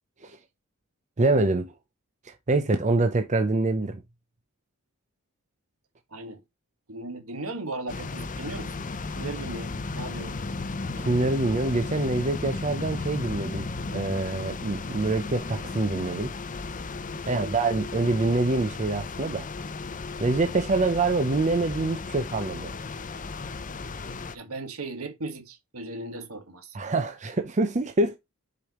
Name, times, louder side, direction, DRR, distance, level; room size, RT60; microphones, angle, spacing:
voice 1, 1.2-1.7 2.2-4.0 11.0-16.3 17.3-19.5 20.2-22.7 26.7-28.2, right 2 dB, 35° right, 0.6 m, -25 dB
voice 2, 6.1-6.4 6.9-8.7 9.1-10.4 17.3-17.5 24.3-26.9, right 2 dB, 70° right, 1.6 m, -37 dB
sound 1, 7.9-24.3, left 3 dB, 40° left, 0.7 m, -35 dB
6.8 x 5.0 x 3.0 m
head